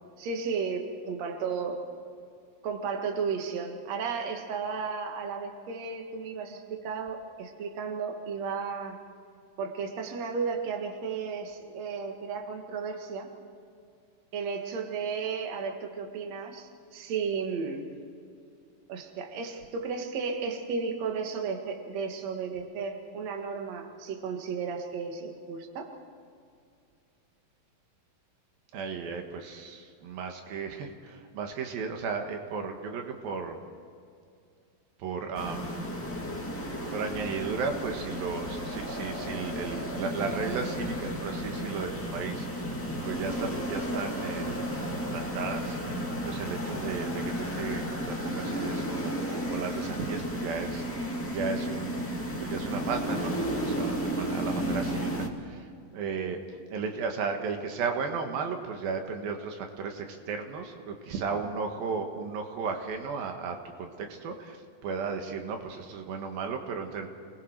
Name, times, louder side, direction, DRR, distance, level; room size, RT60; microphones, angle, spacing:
voice 1, 0.2-1.8 2.6-9.0 9.6-13.3 14.3-17.9 18.9-25.9, right 5 dB, 55° right, 4 dB, 2.7 m, -34 dB
voice 2, 28.7-33.6 35.0-35.8 36.9-44.6 44.9-52.1 52.4-67.1, right 5 dB, 80° right, 4 dB, 3.3 m, -35 dB
sound 1, 35.3-55.3, equal, 5° left, 1.1 m, -33 dB
29.0 x 20.0 x 4.7 m, 2.4 s
omnidirectional pair, 4.1 m